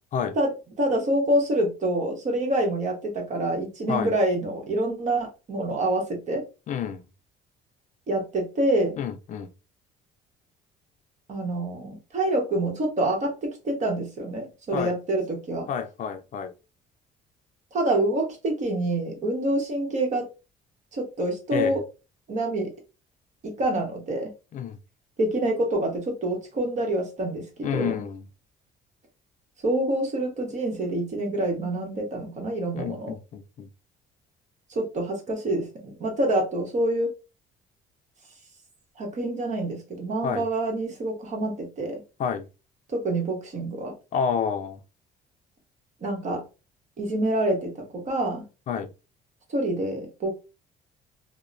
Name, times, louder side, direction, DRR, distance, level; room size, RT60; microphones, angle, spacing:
voice 1, 0.8-6.4 8.1-9.0 11.3-15.7 17.7-20.3 20.9-21.8 22.3-22.7 23.4-24.3 25.2-28.0 29.6-33.1 34.7-37.1 39.0-42.0 42.9-43.9 46.0-46.4 47.0-48.4 49.5-50.3, right 1 dB, 45° right, 1.1 m, -26 dB
voice 2, 6.7-7.0 9.0-9.5 14.7-14.9 15.7-16.5 21.5-21.8 24.5-24.8 27.6-28.3 32.8-33.7 40.2-40.5 42.2-42.5 44.1-44.8 48.7-48.9, left 7 dB, 50° left, 0.4 m, -29 dB
2.8 x 2.1 x 2.5 m
cardioid pair, 110°, 17 cm